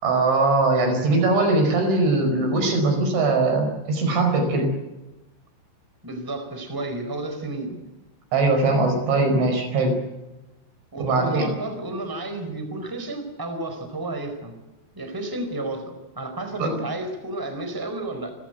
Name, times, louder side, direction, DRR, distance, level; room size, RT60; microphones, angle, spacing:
voice 1, 0.0-4.7 8.3-10.0 11.0-11.5 16.6-16.7, right 3 dB, 90° right, 6 dB, 7.4 m, -21 dB
voice 2, 6.0-7.8 10.9-14.5 14.9-18.3, right 2 dB, 5° right, 6 dB, 3.8 m, -31 dB
30.0 x 14.5 x 8.1 m, 1.0 s
omnidirectional pair, 5.2 m